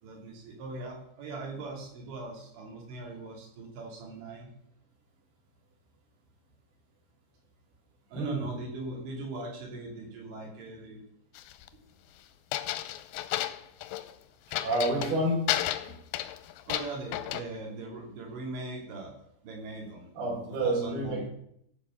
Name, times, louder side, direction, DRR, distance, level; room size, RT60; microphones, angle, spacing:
voice 1, 0.0-4.5 8.1-11.0 16.3-16.4 16.7-19.1 19.4-21.2, right 2 dB, 80° right, -1 dB, 5.0 m, -40 dB
voice 2, 8.1-8.5 14.6-15.5 15.8-15.9 20.2-21.2, right 1 dB, 60° right, -1 dB, 4.4 m, -29 dB
sound 1, 11.4-11.7 12.5-14.1 14.5-15.2 15.5-17.4, left 14 dB, 85° left, 2.5 m, -32 dB
14.0 x 5.1 x 6.9 m, 0.73 s
omnidirectional pair, 5.1 m